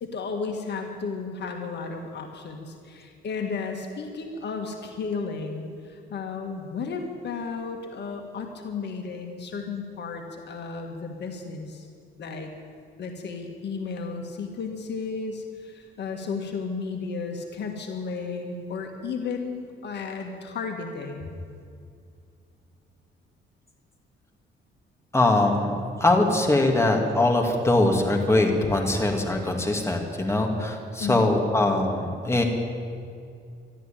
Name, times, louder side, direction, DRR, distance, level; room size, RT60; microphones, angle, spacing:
voice 1, 0.0-11.9 12.2-12.5 13.0-21.3 31.0-31.3, left 4 dB, 60° left, 3 dB, 1.8 m, -33 dB
voice 2, 25.1-32.4, left 2 dB, 15° left, 1 dB, 2.5 m, -22 dB
13.0 x 12.5 x 9.0 m, 2.3 s
cardioid pair, 90°, 20 cm